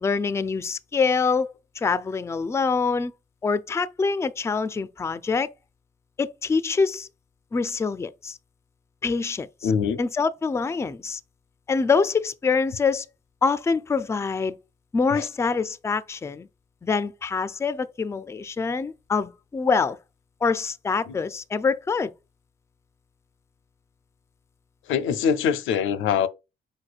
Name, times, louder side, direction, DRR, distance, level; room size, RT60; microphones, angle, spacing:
voice 1, 0.0-1.5 1.8-3.1 3.4-5.5 6.2-7.1 7.5-8.4 9.0-9.7 10.0-11.2 11.7-13.1 13.4-14.6 14.9-16.5 16.8-20.0 20.4-22.1, left 4 dB, 15° left, 0.3 m, -25 dB
voice 2, 9.6-10.0 15.1-15.3 21.1-21.2 24.9-26.3, left 7 dB, 80° left, 0.5 m, -23 dB
4.8 x 4.3 x 2.4 m
cardioid pair, 90°, 20 cm